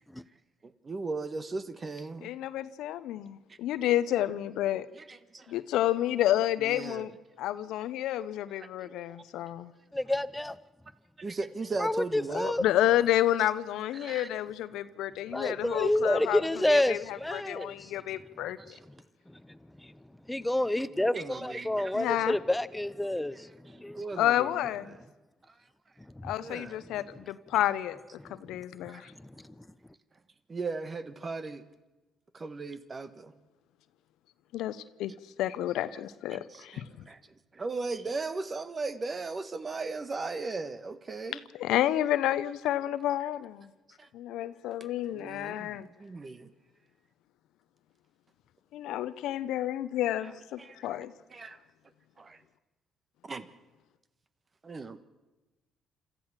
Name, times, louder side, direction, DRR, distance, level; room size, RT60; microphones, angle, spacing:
voice 1, 0.6-2.3 3.5-3.6 4.0-4.1 4.9-5.4 6.6-7.1 8.6-8.9 11.2-12.5 13.9-14.3 16.4-16.6 18.6-18.8 21.0-22.0 23.6-25.1 26.4-26.8 28.9-29.1 30.5-31.6 32.3-33.3 35.9-41.4 44.0-44.1 45.0-46.5 50.1-51.1 51.3-51.6 52.2-52.4 53.2-53.5 54.6-55.0, right 3 dB, 35° right, 1.4 m, -38 dB
voice 2, 2.2-4.9 5.5-7.1 7.4-9.7 12.4-18.6 21.9-22.4 24.2-25.0 26.2-28.0 28.3-29.1 34.5-35.1 35.4-36.8 41.6-43.7 44.1-45.9 48.7-51.1, left 13 dB, 80° left, 0.8 m, -30 dB
voice 3, 9.9-10.6 11.8-12.6 15.3-17.9 19.5-19.9 20.3-23.5 23.8-24.0 26.2-26.3 28.2-28.6 29.2-29.5, left 1 dB, 10° left, 0.9 m, -29 dB
27.0 x 13.5 x 7.5 m
supercardioid pair, 65°, 0 cm